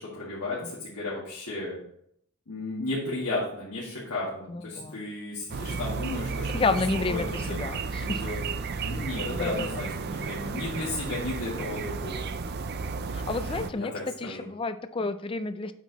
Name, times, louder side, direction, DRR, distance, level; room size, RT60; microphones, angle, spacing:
voice 1, 0.0-1.8 2.5-6.7 7.1-8.4 8.8-12.2 13.5-14.5, left 2 dB, 85° left, -7 dB, 2.0 m, -34 dB
voice 2, 4.5-5.0 6.5-8.2 9.3-9.8 13.1-13.9 14.2-15.7, left 3 dB, 25° left, 11 dB, 0.3 m, -30 dB
sound 1, 5.5-13.7, right 4 dB, 45° right, 0.4 m, -33 dB
8.1 x 4.6 x 4.0 m, 0.69 s
head